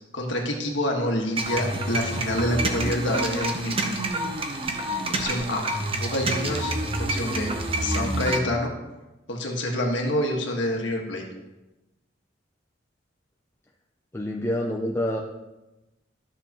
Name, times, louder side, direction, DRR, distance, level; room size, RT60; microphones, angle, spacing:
voice 1, 0.1-4.0 5.1-5.7 5.9-6.7 7.0-7.5 7.8-8.7 9.3-11.2, left 1 dB, 75° left, 1 dB, 1.6 m, -27 dB
sound 1, 1.4-8.4, right 2 dB, 30° right, 0.8 m, -28 dB
voice 2, 14.1-15.2, left 1 dB, 15° left, 0 dB, 0.5 m, -27 dB
12.5 x 6.8 x 3.0 m, 1.0 s
head